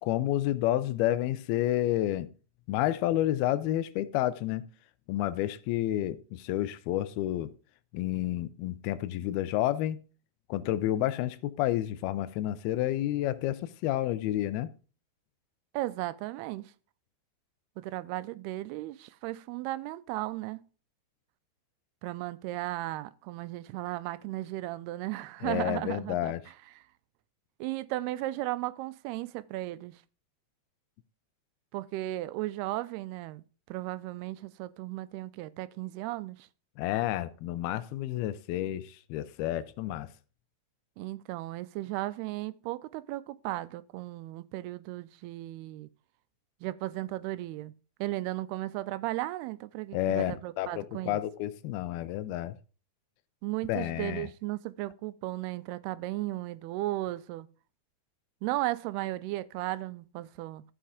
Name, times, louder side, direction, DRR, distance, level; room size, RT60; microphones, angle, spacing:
voice 1, 0.0-2.3 2.7-4.7 5.1-7.5 7.9-10.0 10.5-14.7 25.4-26.4 36.8-40.1 49.9-52.6 53.7-54.3, left 14 dB, 80° left, 2.5 m, -30 dB
voice 2, 15.7-16.7 17.8-20.6 22.0-26.3 27.6-30.0 31.7-36.5 41.0-45.9 46.6-47.7 48.0-51.2 53.4-57.5 58.4-60.6, right 17 dB, 85° right, 2.6 m, -35 dB
13.5 x 5.7 x 5.0 m
omnidirectional pair, 4.5 m